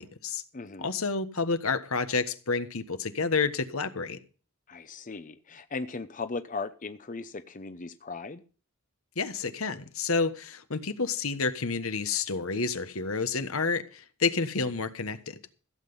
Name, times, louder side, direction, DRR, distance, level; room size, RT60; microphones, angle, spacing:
voice 1, 0.0-0.4 0.8-4.2 9.2-15.4, left 4 dB, 75° left, 1.3 m, -29 dB
voice 2, 0.5-0.9 4.7-8.4, left 4 dB, 40° left, 0.7 m, -37 dB
15.5 x 8.0 x 5.4 m
head